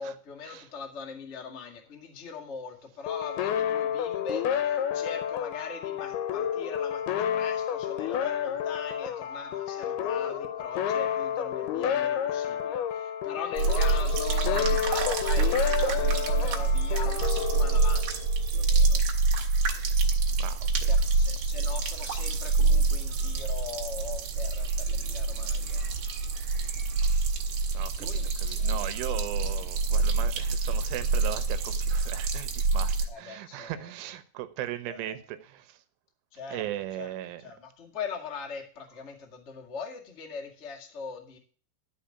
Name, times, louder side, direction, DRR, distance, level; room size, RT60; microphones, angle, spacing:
voice 1, 0.0-19.0 20.9-25.9 28.0-28.8 29.5-29.7 33.1-33.9 34.9-35.2 36.3-36.7 36.9-37.1 37.4-41.4, left 6 dB, 50° left, 0.7 m, -40 dB
sound 1, 3.1-18.4, left 9 dB, 70° left, 2.6 m, -30 dB
sound 2, 13.6-33.1, right 3 dB, 60° right, 2.8 m, -26 dB
voice 2, 20.4-20.9 27.7-35.8 36.5-37.4, right 13 dB, 85° right, 3.5 m, -38 dB
13.5 x 5.3 x 8.6 m
omnidirectional pair, 5.5 m